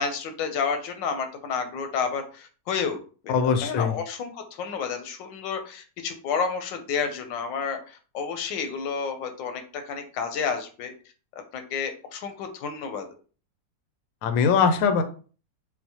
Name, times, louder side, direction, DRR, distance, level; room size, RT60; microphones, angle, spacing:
voice 1, 0.0-3.0 3.2-10.9 11.5-13.1, left 5 dB, 90° left, 6 dB, 1.3 m, -30 dB
voice 2, 3.3-3.9 14.2-15.0, left 6 dB, 70° left, 8 dB, 0.8 m, -21 dB
4.3 x 2.1 x 2.7 m, 0.38 s
omnidirectional pair, 1.9 m